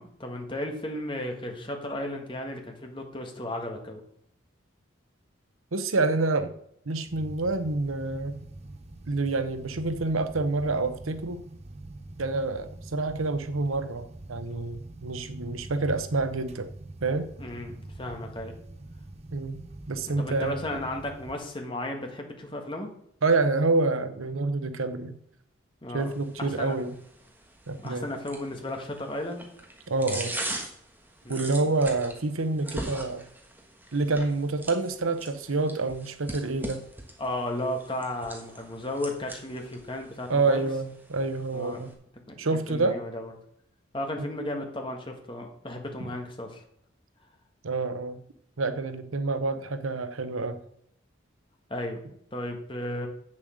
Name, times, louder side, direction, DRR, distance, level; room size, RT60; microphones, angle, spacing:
voice 1, 0.0-4.0 17.4-18.5 20.1-22.9 25.8-26.1 26.4-26.7 27.8-29.5 31.2-31.5 37.2-40.6 41.5-41.8 42.5-43.3 43.9-46.6 51.7-52.0 52.3-53.1, left 1 dB, 25° left, 3 dB, 1.6 m, -34 dB
voice 2, 5.7-6.5 6.9-8.5 9.1-11.4 12.2-16.7 17.0-17.3 19.3-20.6 23.2-25.2 25.9-27.0 27.7-28.1 29.9-30.3 31.3-33.3 33.9-36.8 40.3-41.9 42.4-43.0 44.2-44.3 47.6-48.2 48.6-50.6, right 3 dB, 90° right, 11 dB, 0.9 m, -27 dB
sound 1, 7.1-21.3, right 2 dB, 30° right, 0.8 m, -44 dB
sound 2, 26.0-41.9, right 1 dB, 10° right, 1.4 m, -42 dB
8.0 x 7.4 x 6.3 m, 0.71 s
head